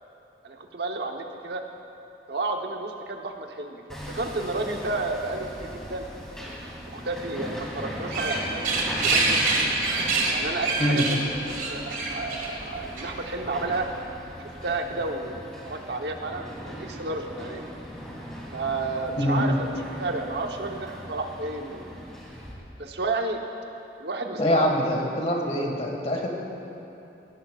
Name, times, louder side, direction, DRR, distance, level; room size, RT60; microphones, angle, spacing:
voice 1, 0.4-1.6 2.3-6.1 6.9-9.4 10.3-11.2 11.5-13.9 14.6-17.6 18.5-19.7 20.0-21.9 22.8-23.4 24.0-24.7, right 3 dB, 70° right, 3 dB, 1.1 m, -31 dB
Hammer, 3.9-22.5, equal, 5° left, 2.5 m, -39 dB
sound 1, 7.9-13.3, right 3 dB, 50° right, 2.0 m, -26 dB
voice 2, 19.2-19.5 24.4-26.3, equal, 35° left, 0 dB, 1.8 m, -24 dB
21.0 x 16.5 x 2.5 m, 2.8 s
head